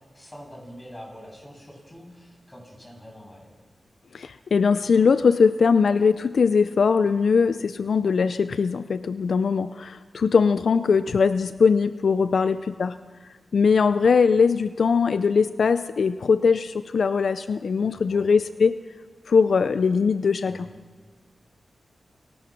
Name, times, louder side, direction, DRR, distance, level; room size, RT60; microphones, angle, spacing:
voice 1, 0.1-3.6 12.2-12.5 17.9-18.2 20.4-20.7, equal, 15° left, 1 dB, 7.5 m, -45 dB
voice 2, 4.1-13.0 13.5-18.8 19.3-20.7, left 5 dB, 70° left, 12 dB, 0.5 m, -21 dB
27.5 x 17.0 x 6.2 m, 1.5 s
cardioid pair, 65°, 0 cm